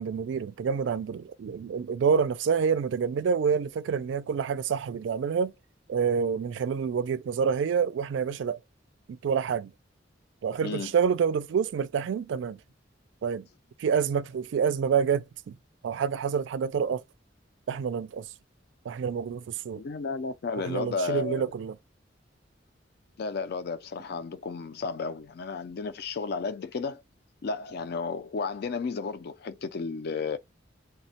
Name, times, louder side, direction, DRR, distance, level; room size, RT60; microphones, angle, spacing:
voice 1, 0.0-5.5 5.9-8.6 9.1-9.7 10.4-12.6 13.2-13.5 13.8-15.6 15.8-17.0 17.7-18.3 18.9-19.8 20.6-21.8, right 6 dB, 70° right, 0.3 m, -27 dB
voice 2, 10.6-10.9 19.8-21.4 23.2-27.0 27.4-30.4, left 4 dB, 55° left, 0.4 m, -33 dB
3.4 x 2.1 x 2.7 m
head